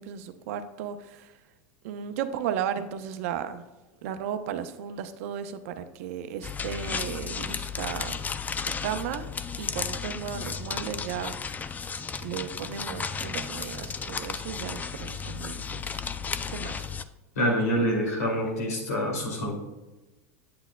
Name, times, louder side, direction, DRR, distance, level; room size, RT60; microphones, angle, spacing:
voice 1, 0.0-1.3 1.8-3.6 4.0-8.2 8.6-9.3 9.6-11.4 12.2-16.0 16.5-16.9, right 9 dB, 70° right, 9 dB, 0.7 m, -35 dB
sound 1, 6.4-17.0, left 6 dB, 20° left, 0.4 m, -34 dB
voice 2, 17.4-19.6, equal, 90° left, -1 dB, 2.5 m, -26 dB
8.6 x 8.2 x 2.2 m, 1.1 s
hypercardioid pair, 95°, 8 cm